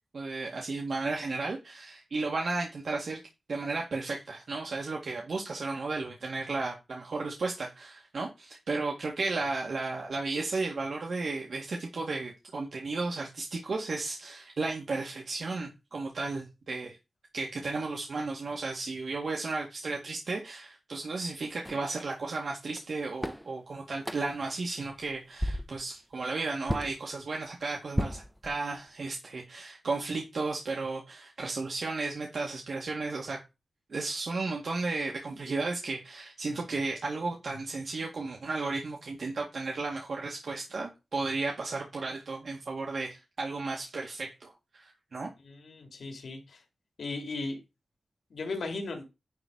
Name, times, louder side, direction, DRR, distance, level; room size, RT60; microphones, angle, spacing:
voice 1, 0.1-3.2 3.5-17.0 17.3-33.4 33.9-45.3, right 3 dB, 70° right, 2.1 m, -34 dB
sound 1, 21.6-21.9 22.8-22.9 23.2-23.5 24.0-24.4 24.9-25.1 25.4-25.8 26.7-27.0 27.9-28.9, equal, ahead, 0.8 m, -33 dB
voice 2, 45.4-46.6 47.0-47.6 48.3-49.0, left 3 dB, 85° left, 2.5 m, -36 dB
10.5 x 4.1 x 6.2 m
wide cardioid pair, 115°, 0 cm